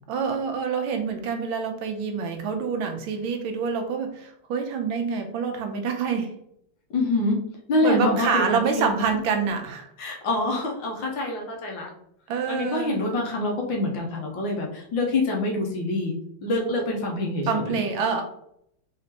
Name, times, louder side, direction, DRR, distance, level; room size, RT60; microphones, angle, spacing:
voice 1, 0.1-6.3 7.8-9.9 12.3-13.0 17.5-18.2, right 5 dB, 80° right, 5 dB, 1.5 m, -26 dB
voice 2, 6.9-7.4 7.7-9.0 10.0-11.9 12.5-16.1 16.4-17.8, left 2 dB, 70° left, -1 dB, 1.7 m, -26 dB
4.2 x 3.7 x 2.9 m, 0.72 s
omnidirectional pair, 2.2 m